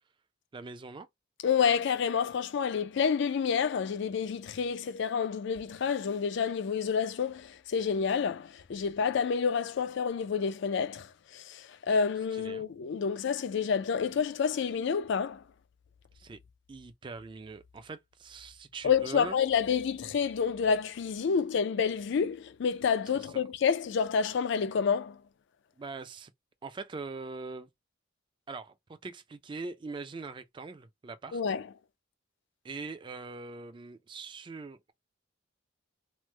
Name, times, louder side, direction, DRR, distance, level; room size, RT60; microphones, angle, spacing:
voice 1, 0.5-1.1 12.4-12.6 16.1-16.4 16.7-19.4 23.3-23.4 25.8-26.3 26.6-27.7 28.5-28.7 29.0-31.4 32.6-34.9, right 3 dB, 25° right, 0.3 m, -42 dB
voice 2, 1.4-15.4 18.8-25.2 31.3-31.7, left 6 dB, 60° left, 0.4 m, -29 dB
3.1 x 2.0 x 3.1 m
head